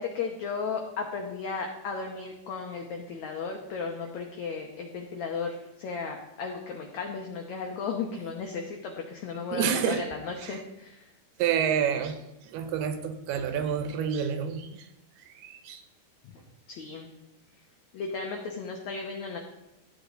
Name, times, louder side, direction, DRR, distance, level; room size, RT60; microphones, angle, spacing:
voice 1, 0.0-11.1 16.7-17.1 17.9-19.4, left 5 dB, 85° left, 2 dB, 1.6 m, -35 dB
voice 2, 9.5-10.0 10.4-10.6 11.4-12.2 12.5-14.8 15.4-15.8, right 8 dB, 80° right, 8 dB, 2.8 m, -28 dB
13.0 x 8.4 x 3.9 m, 0.95 s
omnidirectional pair, 4.7 m